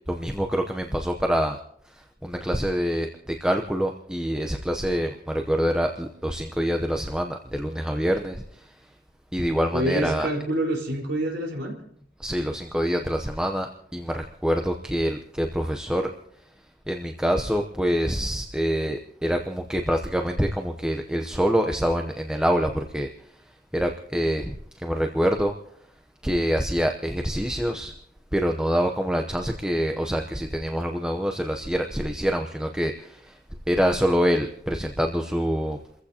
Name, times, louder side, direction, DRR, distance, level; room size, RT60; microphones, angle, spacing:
voice 1, 0.1-1.6 1.9-8.7 9.3-10.3 12.2-16.1 16.9-23.1 23.7-25.5 26.2-27.9 28.3-33.4 33.7-35.8, equal, 5° right, 3 dB, 0.7 m, -26 dB
voice 2, 9.7-11.7, right 1 dB, 65° right, 1 dB, 4.5 m, -26 dB
29.5 x 15.0 x 2.9 m, 0.69 s
head